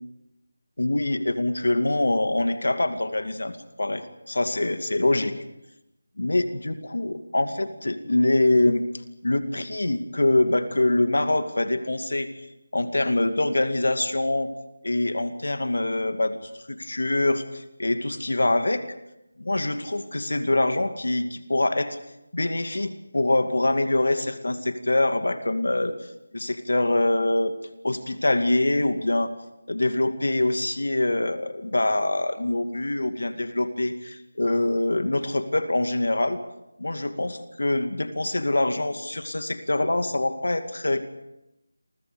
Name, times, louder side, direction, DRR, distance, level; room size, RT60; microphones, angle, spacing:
voice 1, 0.8-5.3 6.2-8.8 9.2-12.3 12.7-14.5 14.8-18.8 19.4-22.0 22.3-27.5 27.8-29.3 29.7-36.4 36.8-41.0, left 2 dB, 70° left, 8 dB, 2.3 m, -24 dB
29.0 x 25.0 x 5.2 m, 0.89 s
figure-of-eight pair, 165°, 0 cm